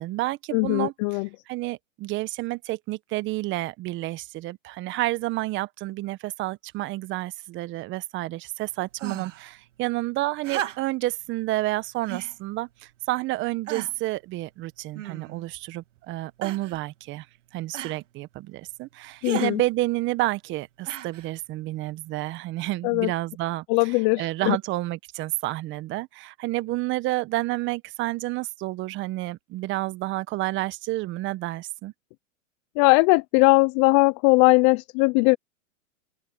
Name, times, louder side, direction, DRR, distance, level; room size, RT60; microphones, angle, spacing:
voice 1, 0.0-1.2 1.5-17.3 17.5-31.9, right 18 dB, 30° right, 1.4 m, -30 dB
voice 2, 0.5-1.3 19.2-19.6 22.8-23.1 23.7-24.6 32.8-35.4, left 28 dB, 25° left, 0.4 m, -20 dB
sound 1, 9.0-9.5 10.4-11.1 12.1-12.4 13.1-13.2 13.7-14.1 14.9-15.5 16.4-16.8 17.7-18.0 19.2-19.5 20.8-21.3 22.3-22.4, right 11 dB, 65° right, 2.5 m, -35 dB
open air
hypercardioid pair, 125°, 39 cm